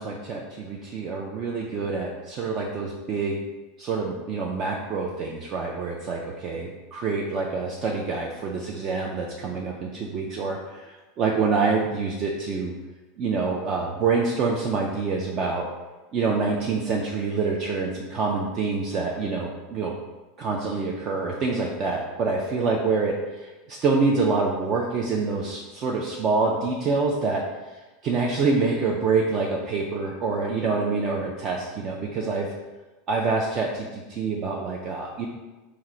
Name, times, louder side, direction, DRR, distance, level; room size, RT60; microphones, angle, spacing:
voice 1, 0.0-3.4 3.8-12.7 13.2-15.7 16.1-20.0 20.4-27.4 28.0-32.5 33.1-35.3, right 4 dB, 30° right, -1 dB, 0.3 m, -26 dB
3.7 x 2.0 x 4.3 m, 1.2 s
supercardioid pair, 160°, 0 cm